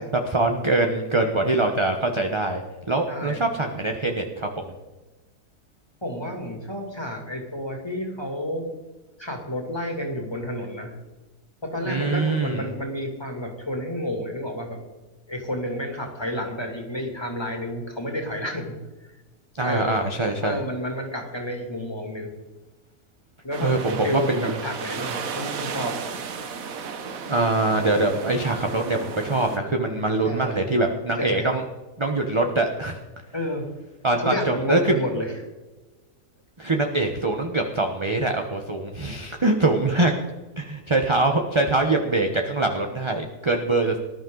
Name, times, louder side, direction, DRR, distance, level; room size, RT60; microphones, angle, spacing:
voice 1, 0.3-2.6 2.9-4.6 11.9-12.7 19.6-20.6 23.6-24.5 27.3-31.6 32.0-33.0 34.0-35.0 36.6-40.1 40.6-44.0, right 2 dB, 20° right, 3 dB, 0.9 m, -23 dB
voice 2, 3.1-3.4 6.0-8.7 9.2-11.0 11.6-14.8 15.3-18.8 19.6-20.0 20.4-22.3 23.4-26.0 30.2-30.6 31.2-31.5 33.3-33.7 34.2-35.4 39.9-40.1, equal, 15° left, 2 dB, 2.8 m, -30 dB
sound 1, 23.5-29.6, right 6 dB, 65° right, 1.4 m, -34 dB
19.0 x 12.0 x 3.9 m, 1.2 s
omnidirectional pair, 1.6 m